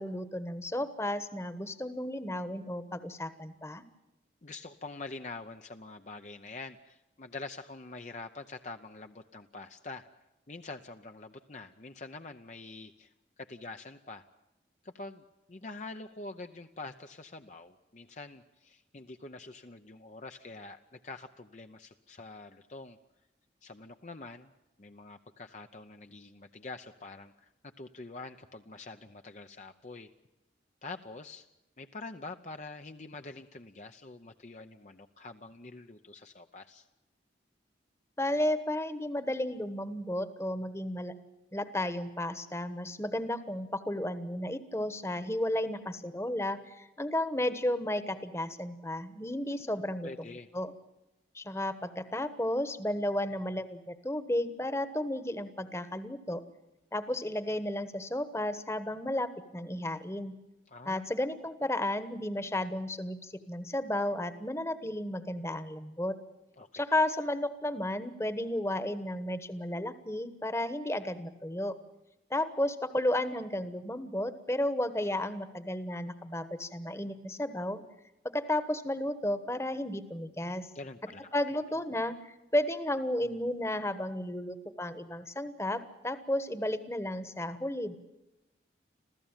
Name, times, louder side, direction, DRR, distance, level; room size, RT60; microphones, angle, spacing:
voice 1, 0.0-3.8 38.2-41.1 41.5-50.3 50.5-50.7 51.3-56.4 56.9-60.3 60.8-66.2 66.7-71.8 72.3-77.8 78.3-80.7 81.3-87.9, left 1 dB, 15° left, 12 dB, 1.2 m, -33 dB
voice 2, 4.4-10.0 10.5-14.3 14.8-23.0 23.6-24.5 24.8-30.1 30.8-31.5 31.8-36.9 50.0-50.5 60.7-61.1 66.6-66.8 80.7-81.3, left 3 dB, 40° left, 6 dB, 0.7 m, -45 dB
27.0 x 15.5 x 9.0 m, 0.98 s
head